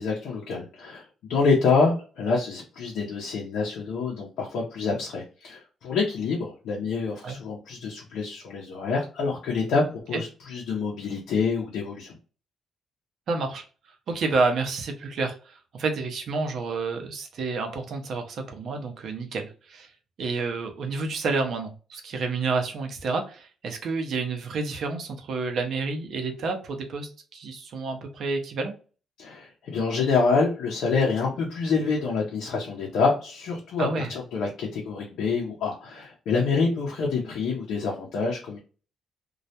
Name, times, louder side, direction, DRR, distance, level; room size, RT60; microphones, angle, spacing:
voice 1, 0.0-12.2 29.2-38.6, left 4 dB, 80° left, -2 dB, 0.6 m, -26 dB
voice 2, 13.3-19.9 20.2-28.7 33.8-34.1, right 4 dB, 65° right, 4 dB, 0.6 m, -29 dB
2.3 x 2.1 x 2.7 m, 0.37 s
cardioid pair, 90°, 0 cm